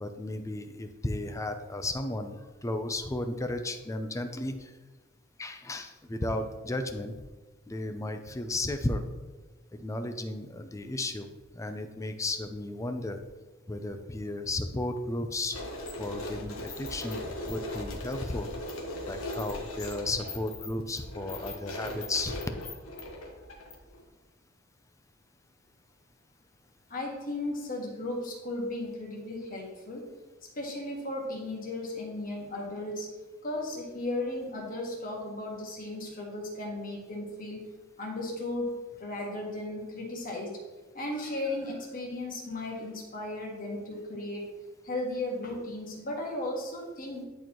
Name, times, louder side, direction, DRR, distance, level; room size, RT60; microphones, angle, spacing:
voice 1, 0.0-2.3 2.6-4.7 5.4-7.1 7.7-9.0 9.8-11.3 11.6-13.2 13.7-15.6 16.0-18.5 19.1-22.4, left 2 dB, 15° left, 8 dB, 0.4 m, -34 dB
sound 1, 15.5-24.0, left 1 dB, 90° left, 1.3 m, -39 dB
voice 2, 26.9-30.1 30.5-33.1 33.4-37.6 38.0-38.7 39.0-40.6 40.9-44.5 44.8-47.2, left 1 dB, 45° left, -1 dB, 1.6 m, -35 dB
10.5 x 4.5 x 3.0 m, 1.2 s
head